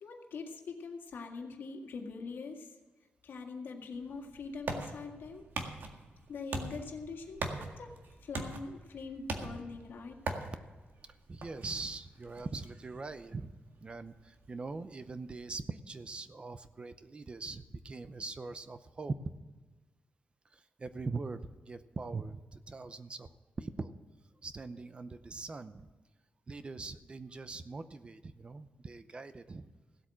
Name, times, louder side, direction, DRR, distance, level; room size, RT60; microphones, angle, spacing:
voice 1, 0.0-2.8 3.2-5.5 6.3-10.2, left 4 dB, 75° left, 3 dB, 1.9 m, -43 dB
sound 1, 3.9-15.4, right 3 dB, 70° right, 1.8 m, -43 dB
voice 2, 11.3-13.5 13.8-19.1 20.5-23.3 23.6-23.9 24.4-25.9 26.5-29.7, right 3 dB, 30° right, 12 dB, 0.6 m, -42 dB
16.5 x 8.3 x 6.2 m, 1.3 s
wide cardioid pair, 135°, 4 cm